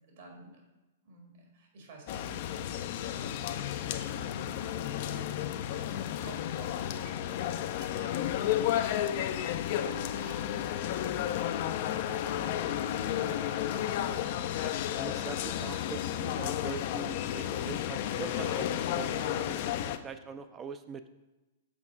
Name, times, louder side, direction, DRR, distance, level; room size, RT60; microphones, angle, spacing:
voice 1, 0.1-0.7 1.0-5.8 6.2-8.2 8.7-11.5 11.9-12.8 13.1-14.4, right 3 dB, 60° right, 0 dB, 1.7 m, -52 dB
sound 1, 2.1-20.0, left 11 dB, 55° left, 0.3 m, -32 dB
voice 2, 11.7-12.0 13.3-13.4 14.7-21.0, right 5 dB, 20° right, 10 dB, 0.3 m, -43 dB
6.2 x 4.4 x 3.6 m, 1.1 s
hypercardioid pair, 115°, 0 cm